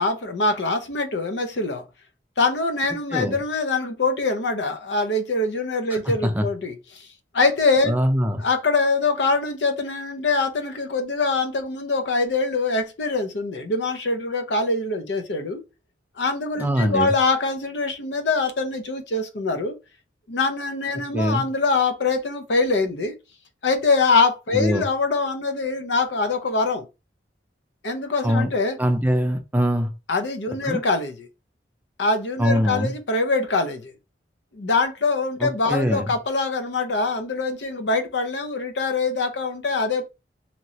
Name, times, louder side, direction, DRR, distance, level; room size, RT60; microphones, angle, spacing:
voice 1, 0.0-1.8 2.4-7.1 7.3-7.9 8.4-15.6 16.2-19.8 20.3-23.1 23.6-26.9 27.8-28.8 30.1-31.3 32.0-33.9 34.5-40.1, left 3 dB, 80° left, 0.6 m, -23 dB
voice 2, 5.9-6.5 7.9-8.4 16.6-17.1 21.1-21.4 24.5-24.8 28.2-28.5 28.8-29.9 30.6-30.8 32.4-32.9 35.4-36.1, equal, 10° right, 0.4 m, -22 dB
2.9 x 2.9 x 2.7 m
head